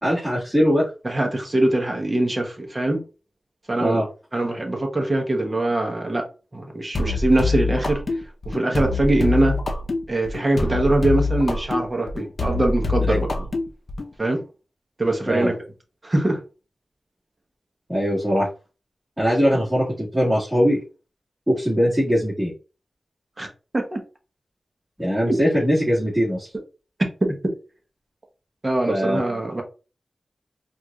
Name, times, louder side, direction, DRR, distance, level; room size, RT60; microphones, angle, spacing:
voice 1, 0.0-0.9 3.8-4.1 13.1-13.2 15.2-15.5 17.9-18.5 19.2-20.8 21.5-22.5 25.0-26.5 28.9-29.2, equal, 10° right, 1.8 m, -21 dB
voice 2, 1.0-3.0 3.7-4.0 4.3-6.2 6.5-8.0 8.5-9.6 10.1-13.3 14.2-14.4 15.0-15.6 16.0-16.4 19.5-19.6 23.4-23.5 23.7-24.0 25.3-25.4 27.2-27.3 28.6-29.6, right 1 dB, 30° right, 1.0 m, -22 dB
sound 1, 6.9-14.1, left 3 dB, 55° left, 0.6 m, -25 dB
4.5 x 2.6 x 2.3 m
wide cardioid pair, 100°, 0 cm